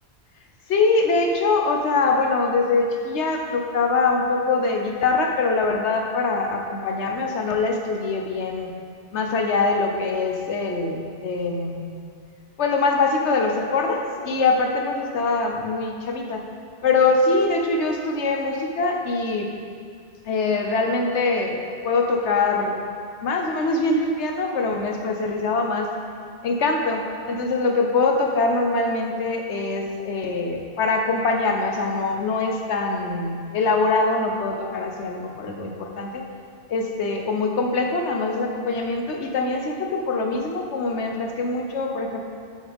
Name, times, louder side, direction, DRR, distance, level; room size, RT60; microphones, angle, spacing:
voice 1, 0.7-8.7 9.1-12.0 12.6-16.4 16.8-19.5 20.2-21.6 21.8-22.8 23.2-25.9 26.4-36.2 36.7-42.2, left 3 dB, 85° left, 2 dB, 1.1 m, -23 dB
7.8 x 7.3 x 3.5 m, 2.2 s
omnidirectional pair, 1.1 m